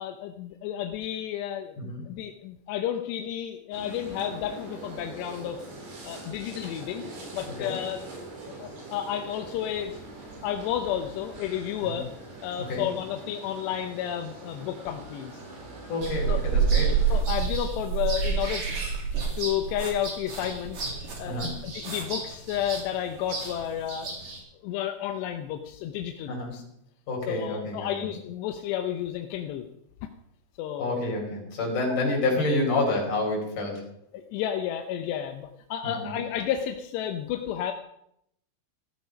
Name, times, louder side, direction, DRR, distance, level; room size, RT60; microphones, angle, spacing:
voice 1, 0.0-5.7 6.0-7.0 7.3-8.0 8.6-9.9 10.4-12.1 12.4-15.4 16.3-16.6 17.1-18.6 19.4-20.8 21.2-24.1 24.6-26.6 27.3-29.7 30.6-31.0 34.1-37.7, left 10 dB, 85° left, 5 dB, 3.0 m, -31 dB
sound 1, 3.7-17.2, right 2 dB, 70° right, 6.1 m, -43 dB
voice 2, 15.9-17.0 21.3-21.5 26.3-26.5 27.1-28.1 30.8-33.8 35.9-36.1, left 2 dB, 50° left, -1 dB, 6.0 m, -28 dB
sound 2, 16.0-24.4, right 6 dB, 45° right, 3.7 m, -28 dB
15.5 x 13.5 x 5.3 m, 0.75 s
omnidirectional pair, 4.8 m